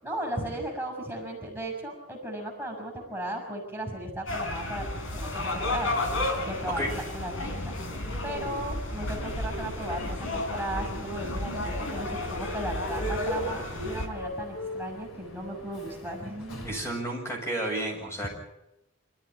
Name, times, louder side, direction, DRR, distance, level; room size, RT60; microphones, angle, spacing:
voice 1, 0.0-4.9 5.2-6.0 6.4-7.7 8.2-16.7 18.2-18.3, right 1 dB, 5° right, -1 dB, 5.8 m, -36 dB
sound 1, 4.3-14.1, left 1 dB, 65° left, 4.1 m, -32 dB
Human voice / Subway metro underground, 9.0-16.9, left 1 dB, 85° left, 4.5 m, -42 dB
voice 2, 16.6-18.3, right 1 dB, 15° left, 0 dB, 7.3 m, -31 dB
26.5 x 14.0 x 10.0 m, 0.87 s
head